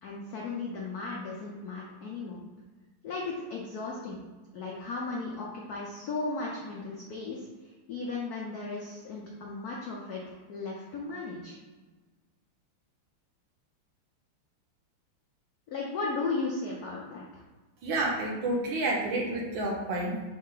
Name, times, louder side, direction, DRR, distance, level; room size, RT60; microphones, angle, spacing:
voice 1, 0.0-2.4 3.0-4.2 4.5-7.5 7.9-11.6 15.7-17.2, left 3 dB, 85° left, -3 dB, 0.8 m, -35 dB
voice 2, 17.8-20.2, right 2 dB, 70° right, -1 dB, 1.4 m, -29 dB
3.7 x 3.1 x 3.8 m, 1.3 s
omnidirectional pair, 2.4 m